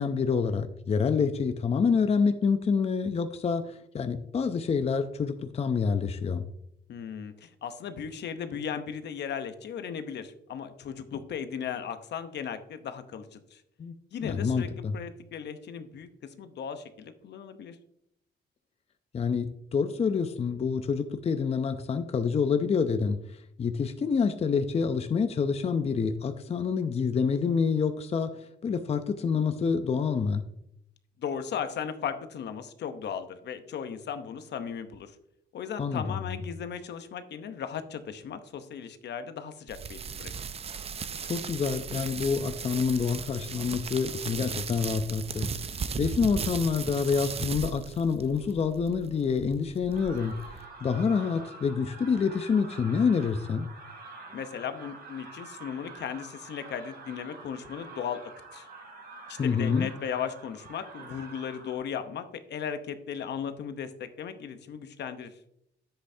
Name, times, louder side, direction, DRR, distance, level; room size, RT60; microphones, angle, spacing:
voice 1, 0.0-6.5 13.8-13.9 14.2-15.0 19.1-30.4 35.8-36.3 41.3-50.4 50.8-53.7 59.4-59.9, left 5 dB, 35° left, 9 dB, 0.5 m, -27 dB
voice 2, 6.9-13.6 14.1-17.8 31.2-35.2 35.5-40.3 54.3-58.7 59.3-65.4, left 7 dB, 65° left, 9 dB, 0.9 m, -37 dB
sound 1, 39.7-50.7, right 6 dB, 35° right, 0.5 m, -37 dB
sound 2, 49.9-61.8, right 3 dB, 55° right, 3.2 m, -47 dB
10.0 x 7.9 x 2.7 m, 0.76 s
cardioid pair, 105°, 19 cm